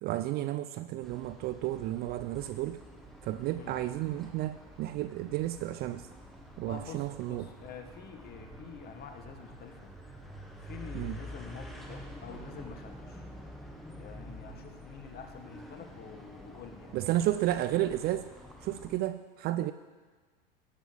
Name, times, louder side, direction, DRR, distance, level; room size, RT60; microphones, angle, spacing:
voice 1, 0.0-2.8 3.2-6.1 6.6-7.5 10.9-11.2 16.9-18.3 18.6-19.7, right 14 dB, 35° right, 12 dB, 0.4 m, -32 dB
sound 1, 1.0-19.0, equal, ahead, 1.5 m, -48 dB
voice 2, 6.7-9.9 10.6-13.2 14.0-17.0, left 6 dB, 35° left, 6 dB, 1.5 m, -47 dB
17.5 x 9.0 x 3.5 m, 1.4 s
hypercardioid pair, 95°, 30 cm